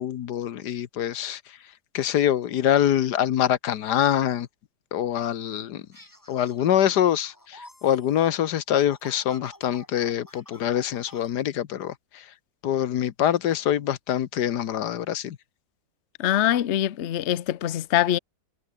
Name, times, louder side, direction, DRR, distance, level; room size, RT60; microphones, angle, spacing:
voice 1, 0.0-1.4 1.9-4.5 4.9-5.8 6.3-12.2 12.6-15.4, left 10 dB, 85° left, 1.6 m, -24 dB
sound 1, 5.9-11.3, left 1 dB, 10° left, 2.8 m, -50 dB
voice 2, 16.2-18.2, left 12 dB, 50° left, 1.0 m, -23 dB
omnidirectional pair, 1.7 m